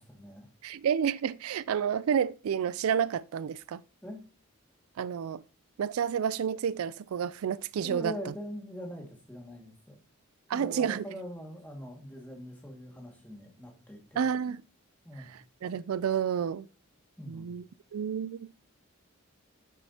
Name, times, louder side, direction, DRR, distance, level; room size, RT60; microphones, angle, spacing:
voice 1, 0.0-0.5 4.0-4.2 7.8-10.0 10.5-14.3 15.0-15.3 17.2-17.5, equal, 10° left, 2.0 m, -42 dB
voice 2, 0.6-3.8 5.0-5.4 5.8-8.1 10.5-11.0 14.2-14.6 15.6-16.6 17.3-17.6 17.9-18.5, right 8 dB, 85° right, 0.4 m, -30 dB
8.9 x 7.2 x 2.9 m
head